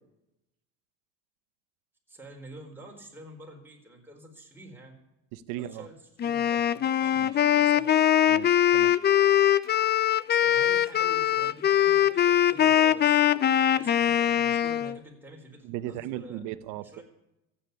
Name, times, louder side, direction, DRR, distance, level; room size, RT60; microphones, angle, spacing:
voice 1, 2.1-4.9 5.5-7.9 10.4-13.2 13.6-16.4 16.8-17.0, right 1 dB, 5° right, 0 dB, 4.4 m, -48 dB
voice 2, 5.3-5.9 7.1-7.3 8.3-8.9 15.6-17.0, right 13 dB, 70° right, 13 dB, 0.9 m, -37 dB
Wind instrument woodwind instrument, 6.2-15.0, left 10 dB, 30° left, 0.6 m, -22 dB
14.5 x 9.0 x 9.7 m, 0.91 s
cardioid pair, 125°, 33 cm